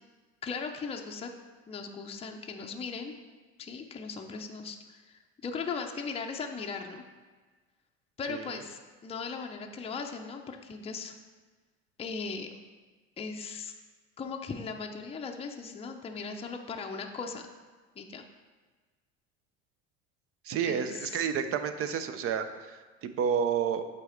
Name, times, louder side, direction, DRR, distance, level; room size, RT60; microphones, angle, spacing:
voice 1, 0.4-1.3 1.7-3.1 3.6-7.0 8.2-11.2 12.0-12.5 13.2-13.7 14.2-17.5 18.0-18.2 20.7-21.2, left 5 dB, 15° left, 3 dB, 0.6 m, -38 dB
voice 2, 8.3-8.6 20.4-23.9, right 7 dB, 40° right, 10 dB, 0.7 m, -30 dB
7.7 x 4.1 x 4.4 m, 1.4 s
hypercardioid pair, 75°, 34 cm